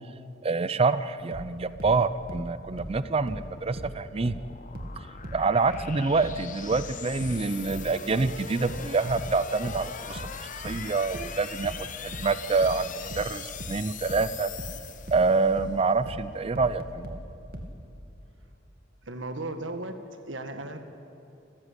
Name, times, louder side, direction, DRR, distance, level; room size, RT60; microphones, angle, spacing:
voice 1, 0.4-4.4 5.3-10.2 10.6-14.5 15.1-17.2, right 4 dB, 30° right, 14 dB, 0.5 m, -26 dB
sound 1, 1.3-4.5 4.7-17.8, equal, 50° right, 2.2 m, -39 dB
sound 2, 1.6-15.7, left 7 dB, 45° left, 1.0 m, -42 dB
voice 2, 19.0-20.8, right 2 dB, 75° right, 7 dB, 1.7 m, -36 dB
29.5 x 14.0 x 8.2 m, 2.7 s
head